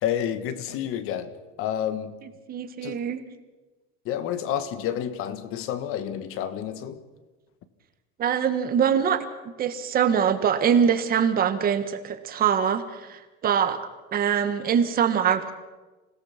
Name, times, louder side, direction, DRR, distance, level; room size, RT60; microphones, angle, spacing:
voice 1, 0.0-2.2 2.8-3.0 4.0-7.0, left 10 dB, 45° left, 1.6 m, -30 dB
voice 2, 2.5-3.2 8.2-13.8 14.1-15.5, right 8 dB, 30° right, 1.5 m, -23 dB
27.0 x 17.5 x 5.9 m
cardioid pair, 165°, 31 cm